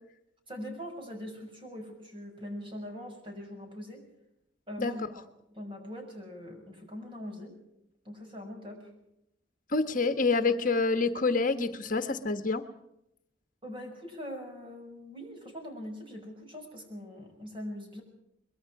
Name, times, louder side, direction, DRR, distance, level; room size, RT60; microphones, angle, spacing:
voice 1, 0.5-4.0 4.7-5.2 5.5-7.5 8.0-8.9 13.6-18.0, equal, 30° right, 2 dB, 6.4 m, -42 dB
voice 2, 9.7-12.6, left 3 dB, 45° left, 8 dB, 1.3 m, -27 dB
24.5 x 22.0 x 4.8 m, 0.81 s
head